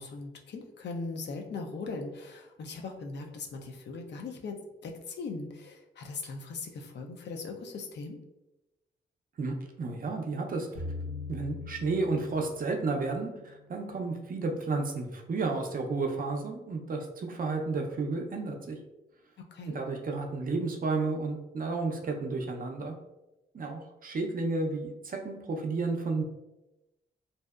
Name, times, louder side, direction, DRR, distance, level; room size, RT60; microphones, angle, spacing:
voice 1, 0.0-8.2 19.5-19.8, left 3 dB, 60° left, 3 dB, 0.4 m, -39 dB
voice 2, 9.4-10.7 11.3-18.8 19.7-22.9 23.5-26.2, right 3 dB, 45° right, 3 dB, 0.5 m, -32 dB
sound 1, 10.7-13.9, left 3 dB, 85° left, 1.4 m, -41 dB
2.6 x 2.0 x 2.3 m, 0.97 s
supercardioid pair, 50°, 21 cm